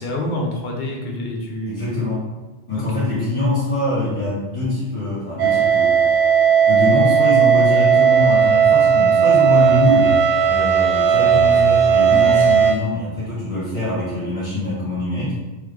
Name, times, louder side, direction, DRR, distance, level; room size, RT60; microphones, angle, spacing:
voice 1, 0.0-2.1 2.7-3.1, left 1 dB, 55° left, 0 dB, 0.8 m, -27 dB
voice 2, 1.7-2.2 2.7-6.0 6.7-10.1 10.5-15.3, left 2 dB, 30° left, -16 dB, 1.7 m, -23 dB
sound 1, 5.4-12.7, right 7 dB, 50° right, 0.6 m, -15 dB
3.8 x 3.0 x 3.2 m, 1.2 s
omnidirectional pair, 1.0 m